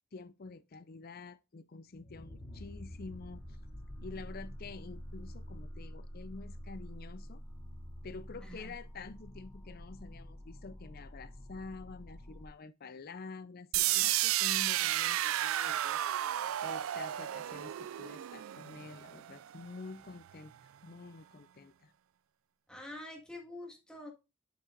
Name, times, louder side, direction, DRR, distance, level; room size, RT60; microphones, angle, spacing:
voice 1, 0.1-3.6 4.0-7.4 8.0-16.1 16.6-20.5 20.8-21.9, left 3 dB, 50° left, 0.5 m, -48 dB
sound 1, 2.0-12.5, equal, 20° left, 2.2 m, -47 dB
voice 2, 8.4-8.7 22.7-24.1, left 1 dB, 5° left, 1.8 m, -46 dB
sound 2, 13.7-19.7, right 14 dB, 80° right, 0.3 m, -32 dB
7.6 x 7.2 x 2.5 m
head